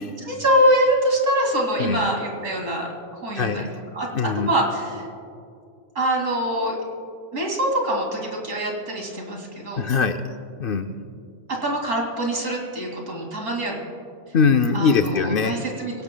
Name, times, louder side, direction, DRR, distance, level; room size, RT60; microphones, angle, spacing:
voice 1, 0.2-3.7 3.9-4.1 4.4-5.1 5.9-6.7 7.3-9.9 11.5-13.8 14.7-16.0, equal, 85° right, 0 dB, 2.9 m, -24 dB
voice 2, 3.3-3.7 4.1-4.5 9.8-10.3 10.6-11.0 14.3-15.6, left 5 dB, 60° left, 7 dB, 0.6 m, -21 dB
23.5 x 17.5 x 2.2 m, 2.4 s
omnidirectional pair, 1.3 m